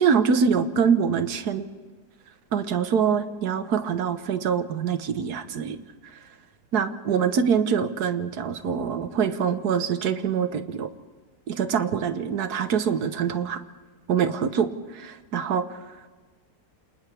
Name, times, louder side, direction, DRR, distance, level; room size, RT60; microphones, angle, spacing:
voice 1, 0.0-1.7 2.5-5.8 6.7-10.9 11.5-13.6 14.1-15.8, right 6 dB, 65° right, 9 dB, 1.7 m, -24 dB
29.0 x 28.0 x 3.5 m, 1.4 s
omnidirectional pair, 1.9 m